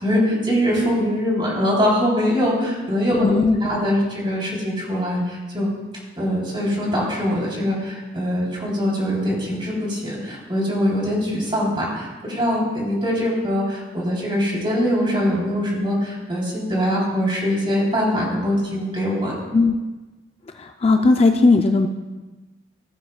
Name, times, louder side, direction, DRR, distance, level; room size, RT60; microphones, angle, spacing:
voice 1, 0.0-5.7 6.2-19.3, equal, 25° right, -4 dB, 3.5 m, -22 dB
voice 2, 3.2-3.6 19.5-19.8 20.6-21.9, left 3 dB, 35° left, 5 dB, 0.4 m, -17 dB
16.0 x 9.4 x 2.3 m, 1.2 s
head